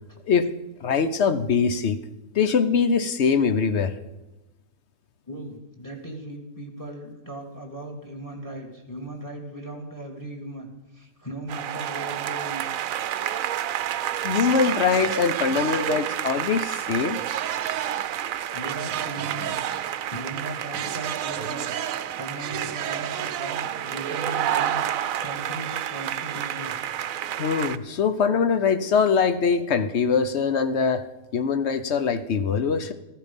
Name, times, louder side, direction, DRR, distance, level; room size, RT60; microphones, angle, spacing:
voice 1, 0.8-2.0 2.3-4.0 14.2-17.2 27.4-31.0 31.3-32.9, left 5 dB, 55° left, 11 dB, 1.0 m, -22 dB
voice 2, 5.3-10.7 10.9-12.6 18.5-19.6 20.1-21.7 22.1-24.8 25.2-26.8, right 1 dB, 15° left, 4 dB, 1.9 m, -37 dB
sound 1, 11.5-27.8, right 11 dB, 70° right, 1.0 m, -29 dB
14.5 x 13.5 x 5.3 m, 1.0 s
omnidirectional pair, 1.5 m